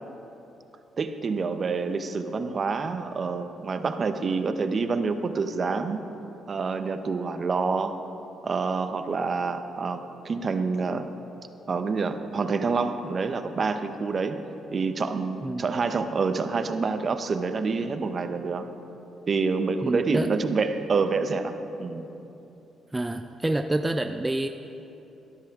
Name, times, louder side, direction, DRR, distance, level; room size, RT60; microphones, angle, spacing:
voice 1, 1.0-6.0 6.5-8.0 8.4-10.0 10.2-11.1 11.7-14.4 14.7-18.7 19.3-22.1, right 4 dB, 45° right, 9 dB, 0.7 m, -27 dB
voice 2, 19.8-20.3 22.9-24.5, right 1 dB, 15° right, 7 dB, 0.4 m, -27 dB
12.5 x 12.5 x 3.6 m, 2.9 s
cardioid pair, 90°, 0 cm